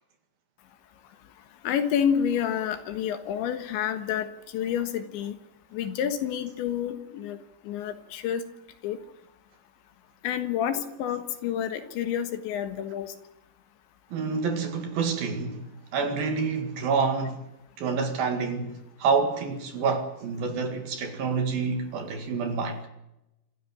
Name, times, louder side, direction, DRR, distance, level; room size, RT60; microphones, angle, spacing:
voice 1, 1.6-4.3 4.5-5.4 5.7-7.4 7.7-8.4 8.8-9.0 10.2-13.1, left 9 dB, 75° left, 3.7 m, -29 dB
voice 2, 14.1-15.6 15.9-17.4 17.8-22.8, right 5 dB, 55° right, 3.4 m, -28 dB
26.5 x 14.5 x 8.9 m
omnidirectional pair, 5.5 m